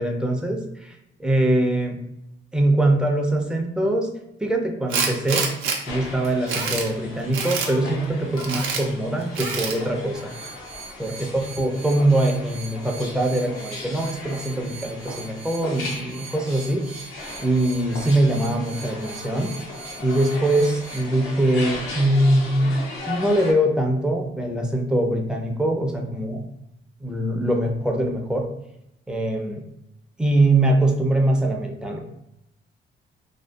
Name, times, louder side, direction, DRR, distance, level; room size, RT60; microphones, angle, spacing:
voice 1, 0.0-2.0 2.5-4.1 4.4-5.5 5.9-10.3 11.0-16.9 17.4-19.6 20.0-22.7 23.1-26.5 27.0-28.5 29.1-29.6 30.2-32.0, right 1 dB, 5° right, 2 dB, 0.4 m, -22 dB
Tools, 4.9-5.8 6.2-6.9 7.3-7.7 8.4-8.8 9.3-9.8, right 5 dB, 85° right, 0.5 m, -26 dB
sound 1, 5.8-23.5, left 3 dB, 85° left, 0.6 m, -37 dB
sound 2, 10.1-21.0, right 5 dB, 50° right, 0.8 m, -42 dB
2.6 x 2.2 x 2.2 m, 0.84 s
cardioid pair, 90°, 20 cm